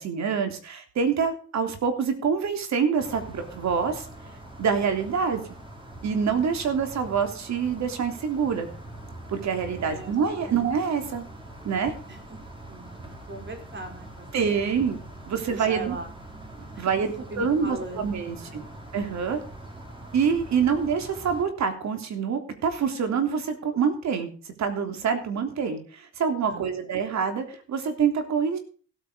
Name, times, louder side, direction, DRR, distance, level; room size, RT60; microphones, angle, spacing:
voice 1, 0.0-4.1 4.6-5.4 6.0-8.7 9.3-11.2 11.6-11.9 14.3-15.0 15.3-16.0 16.8-18.6 18.9-19.4 20.1-24.3 24.6-28.6, right 6 dB, 65° right, 6 dB, 3.4 m, -26 dB
sound 1, 3.0-21.4, right 1 dB, 15° right, 4.7 m, -43 dB
voice 2, 9.8-10.1 10.4-10.5 12.1-12.4 12.7-14.9 15.5-16.1 16.7-18.5 26.5-26.8, right 2 dB, 40° right, 4 dB, 4.9 m, -40 dB
16.5 x 8.9 x 5.0 m, 0.40 s
cardioid pair, 90°, 30 cm